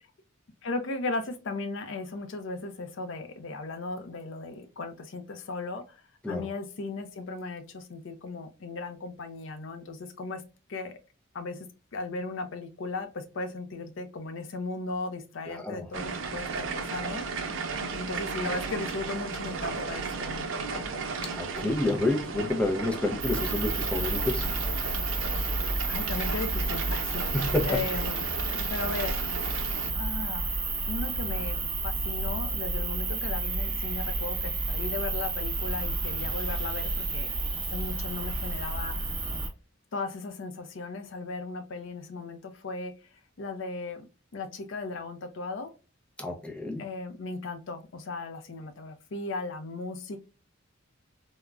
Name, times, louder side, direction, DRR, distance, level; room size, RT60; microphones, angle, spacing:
voice 1, 0.6-6.0 6.3-10.4 10.7-11.0 11.3-17.2 17.9-20.8 25.8-29.2 29.9-30.5 30.9-37.3 37.7-39.0 39.9-42.9 43.4-44.1 44.3-45.7 46.8-50.2, left 3 dB, 65° left, 0.5 m, -36 dB
voice 2, 15.5-15.9 21.3-24.5 27.3-27.7 46.2-46.8, left 2 dB, 5° left, 0.5 m, -29 dB
sound 1, 15.9-29.9, right 4 dB, 70° right, 0.5 m, -35 dB
sound 2, 23.2-39.5, right 3 dB, 25° right, 0.8 m, -31 dB
3.6 x 2.1 x 2.2 m
head